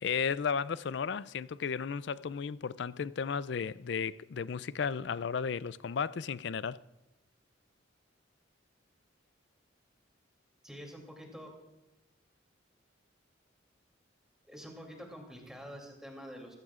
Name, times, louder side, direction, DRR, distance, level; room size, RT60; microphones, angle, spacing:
voice 1, 0.0-6.8, left 6 dB, 60° left, 0.4 m, -34 dB
voice 2, 10.6-11.5 14.5-16.5, equal, 5° right, 2.8 m, -47 dB
22.0 x 15.5 x 2.5 m
head